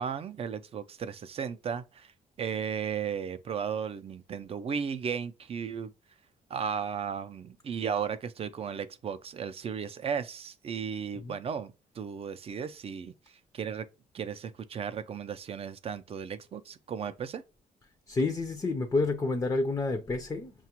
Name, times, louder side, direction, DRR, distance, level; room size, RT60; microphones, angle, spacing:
voice 1, 0.0-2.1 2.4-5.9 6.5-13.1 13.5-13.9 14.1-17.4, right 7 dB, 40° right, 0.4 m, -35 dB
voice 2, 18.1-20.5, left 3 dB, 20° left, 0.5 m, -29 dB
5.8 x 2.3 x 2.8 m
cardioid pair, 135°, 16 cm